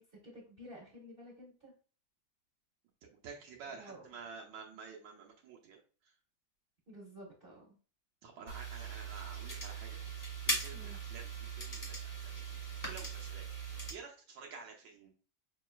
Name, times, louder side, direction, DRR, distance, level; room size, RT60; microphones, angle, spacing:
voice 1, 0.0-1.7 3.7-4.1 6.9-7.8 10.7-11.0, equal, 30° right, -3 dB, 1.3 m, -52 dB
voice 2, 3.0-6.1 8.2-12.0 12.5-15.1, right 5 dB, 80° right, 0 dB, 1.5 m, -51 dB
sound 1, 8.5-13.9, right 3 dB, 25° left, 1.0 m, -40 dB
5.7 x 2.9 x 2.3 m, 0.38 s
omnidirectional pair, 2.1 m